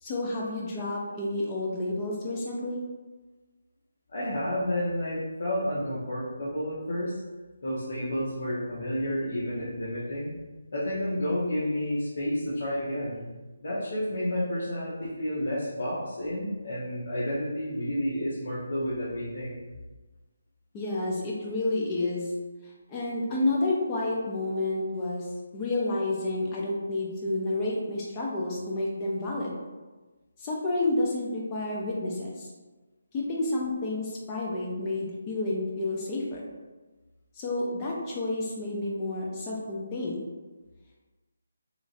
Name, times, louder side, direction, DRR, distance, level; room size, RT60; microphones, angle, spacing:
voice 1, 0.0-2.8 20.7-22.3 22.6-25.3 25.5-29.5 30.4-32.5 33.1-36.5 37.3-40.2, left 2 dB, 20° left, -4 dB, 0.4 m, -30 dB
voice 2, 4.1-7.2 7.6-10.3 10.7-13.3 13.6-19.6, left 1 dB, 65° left, -8 dB, 0.7 m, -30 dB
3.0 x 2.5 x 2.5 m, 1.2 s
hypercardioid pair, 165°, 0 cm